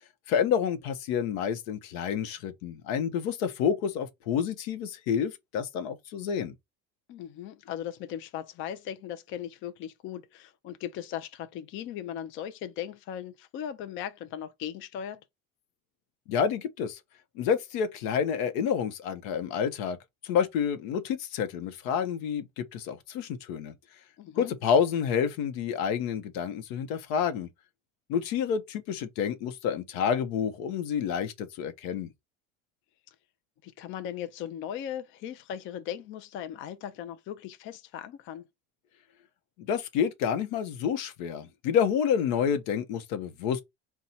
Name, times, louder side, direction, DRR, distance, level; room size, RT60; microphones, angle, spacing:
voice 1, 0.3-6.5 16.3-17.0 17.4-20.0 20.2-23.7 24.4-27.5 28.1-32.1 39.6-43.6, left 7 dB, 85° left, 0.8 m, -29 dB
voice 2, 7.1-15.2 24.2-24.5 33.6-38.4, left 10 dB, 45° left, 0.5 m, -38 dB
4.2 x 2.3 x 4.0 m
cardioid pair, 155°, 29 cm